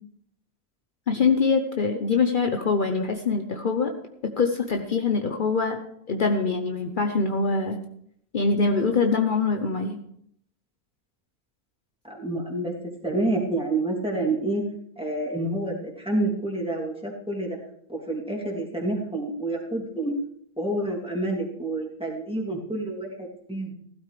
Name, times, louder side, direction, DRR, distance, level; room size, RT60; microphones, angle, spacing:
voice 1, 1.1-3.9 4.2-5.8 6.1-7.8 8.3-10.0, left 4 dB, 55° left, 5 dB, 1.0 m, -24 dB
voice 2, 12.0-12.7 13.0-14.6 15.0-17.6 17.9-20.1 20.6-23.7, right 2 dB, 5° right, -3 dB, 2.8 m, -28 dB
16.0 x 12.5 x 3.3 m, 0.68 s
omnidirectional pair, 1.1 m